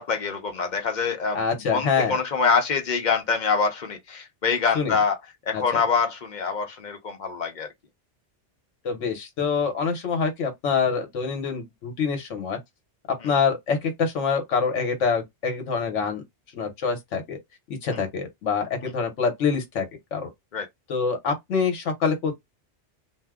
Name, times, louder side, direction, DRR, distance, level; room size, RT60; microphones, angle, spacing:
voice 1, 0.0-5.2 5.5-7.7 13.2-13.3 17.9-18.0 20.5-20.7, left 5 dB, 45° left, 0.8 m, -25 dB
voice 2, 1.3-2.1 4.7-5.0 5.5-5.6 8.8-12.6 13.2-16.2 16.5-17.4 17.8-19.9 20.1-20.3 20.9-22.3, left 5 dB, 80° left, 1.2 m, -25 dB
2.6 x 2.1 x 3.5 m
omnidirectional pair, 1.2 m